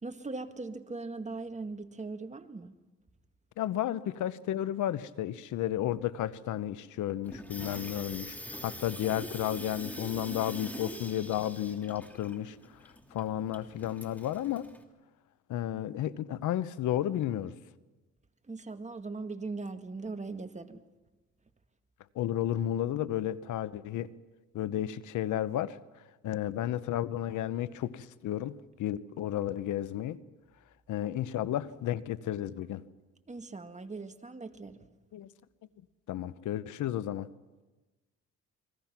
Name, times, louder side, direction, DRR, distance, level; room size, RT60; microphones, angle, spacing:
voice 1, 0.0-2.7 18.5-20.8 33.3-34.9, right 3 dB, 25° right, 8 dB, 1.8 m, -40 dB
voice 2, 3.6-8.3 8.6-12.6 13.1-14.7 15.5-17.5 22.1-24.1 24.5-25.8 26.2-28.5 28.8-30.2 30.9-32.8 35.1-35.3 36.1-37.3, left 12 dB, 80° left, 16 dB, 1.0 m, -32 dB
Water tap faucet / Sink (filling or washing), 7.2-14.8, equal, 5° left, 3.0 m, -44 dB
29.0 x 22.5 x 6.0 m, 1.2 s
cardioid pair, 90°, 30 cm